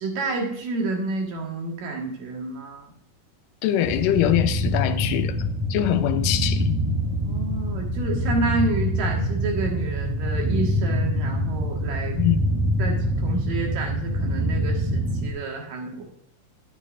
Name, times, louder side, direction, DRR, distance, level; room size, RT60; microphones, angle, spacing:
voice 1, 0.0-2.9 7.2-12.2 12.8-16.0, right 3 dB, 85° right, 3.1 m, -29 dB
voice 2, 3.6-6.7 12.2-12.4, left 12 dB, 85° left, 2.3 m, -23 dB
sound 1, 3.8-15.3, equal, 10° right, 0.9 m, -25 dB
12.0 x 10.0 x 2.5 m
omnidirectional pair, 3.8 m